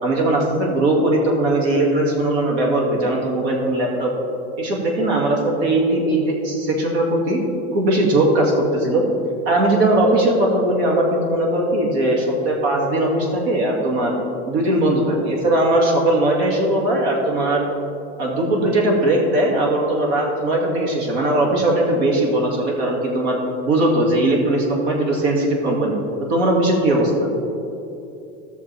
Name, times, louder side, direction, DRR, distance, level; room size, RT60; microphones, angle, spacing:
voice 1, 0.0-4.1 4.6-7.4 7.7-9.0 9.5-14.2 14.5-17.7 18.2-23.4 23.6-26.0 26.3-27.3, right 1 dB, 70° right, -1 dB, 2.4 m, -19 dB
15.5 x 6.5 x 3.5 m, 2.7 s
supercardioid pair, 155°, 33 cm